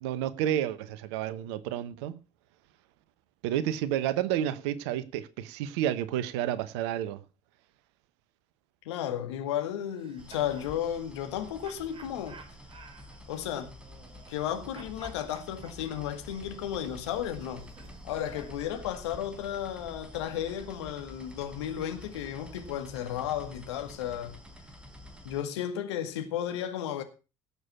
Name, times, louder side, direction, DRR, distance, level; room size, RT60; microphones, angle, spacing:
voice 1, 0.0-2.2 3.4-7.2, right 11 dB, 65° right, 1.0 m, -30 dB
voice 2, 8.9-12.4 13.3-13.7 14.3-17.7 18.0-24.4 25.2-27.0, left 10 dB, 70° left, 2.0 m, -34 dB
sound 1, 9.8-10.7 11.6-14.5 14.7-18.7, right 5 dB, 35° right, 4.2 m, -53 dB
sound 2, 10.2-25.4, left 1 dB, 5° right, 3.7 m, -48 dB
17.5 x 7.1 x 5.8 m
figure-of-eight pair, 55°, 15 cm